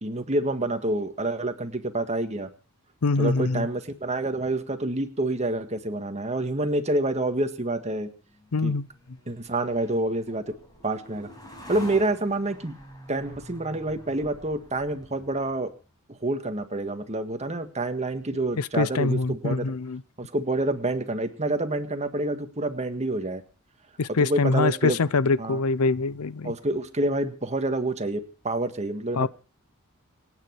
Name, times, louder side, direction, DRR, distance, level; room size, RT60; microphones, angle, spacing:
voice 1, 0.0-2.5 3.2-8.1 8.6-8.7 9.3-10.4 10.8-11.3 11.7-12.8 13.1-15.7 16.2-19.7 20.2-23.4 24.1-25.0 25.4-25.6 26.4-29.3, right 2 dB, 30° right, 1.7 m, -28 dB
voice 2, 3.0-3.7 8.5-8.9 18.6-20.0 24.0-26.5 29.2-29.3, left 3 dB, 85° left, 0.6 m, -24 dB
sound 1, 8.3-15.7, left 1 dB, 20° left, 5.9 m, -47 dB
26.5 x 9.6 x 4.6 m
head